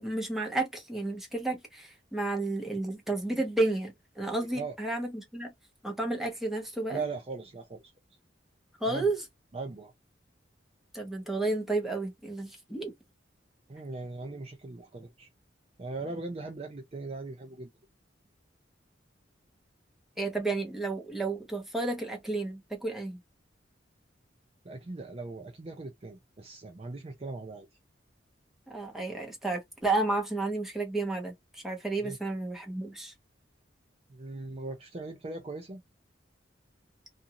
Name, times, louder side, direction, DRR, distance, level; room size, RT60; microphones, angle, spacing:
voice 1, 0.0-5.5 5.8-7.0 8.8-9.2 10.9-12.9 20.2-23.2 28.7-33.1, right 2 dB, ahead, 0.9 m, -32 dB
voice 2, 6.9-7.8 8.9-9.1 9.5-9.9 13.7-15.3 15.8-17.7 24.6-27.7 32.0-32.2 34.1-35.8, right 3 dB, 35° right, 0.5 m, -39 dB
2.5 x 2.5 x 2.7 m
head